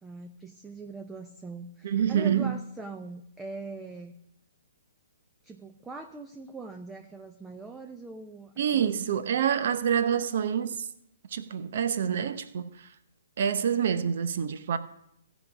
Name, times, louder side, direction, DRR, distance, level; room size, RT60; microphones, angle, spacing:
voice 1, 0.0-4.1 5.4-9.0, right 3 dB, 10° right, 0.6 m, -42 dB
voice 2, 1.8-2.6 8.6-10.9 11.3-12.9 13.4-14.8, right 8 dB, 60° right, 0.8 m, -27 dB
15.5 x 5.2 x 5.9 m
hypercardioid pair, 140°, 0 cm